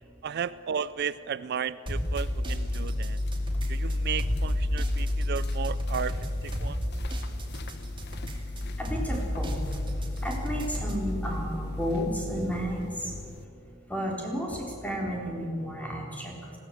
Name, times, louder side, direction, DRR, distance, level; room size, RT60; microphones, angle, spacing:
voice 1, 0.2-3.2 3.7-6.8, right 7 dB, 55° right, 16 dB, 0.4 m, -34 dB
sound 1, 1.9-13.4, left 1 dB, 55° left, 1.0 m, -32 dB
sound 2, 1.9-11.1, equal, 25° right, 2.5 m, -35 dB
voice 2, 8.8-9.5 10.2-12.8 13.9-16.3, equal, 5° left, -1 dB, 3.8 m, -32 dB
20.0 x 16.5 x 7.8 m, 2.7 s
head